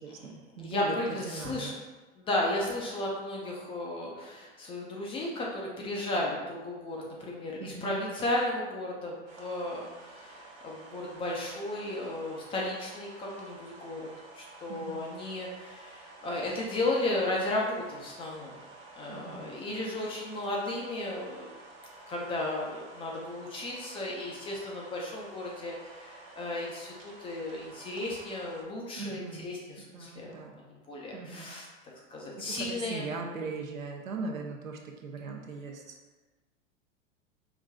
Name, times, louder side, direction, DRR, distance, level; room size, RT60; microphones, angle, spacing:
voice 1, 0.0-1.0 1.3-1.8 7.6-8.0 14.7-15.1 19.1-19.5 28.9-29.5 29.9-30.5 31.1-31.5 32.4-36.0, right 4 dB, 85° right, 2 dB, 0.7 m, -39 dB
voice 2, 0.5-1.7 2.2-14.1 14.3-18.6 19.0-21.5 22.1-31.7 32.1-33.1, left 1 dB, 15° left, -3 dB, 0.3 m, -34 dB
sound 1, 9.3-28.6, right 2 dB, 60° right, 1.3 m, -51 dB
4.7 x 2.5 x 2.3 m, 1.2 s
hypercardioid pair, 100°, 39 cm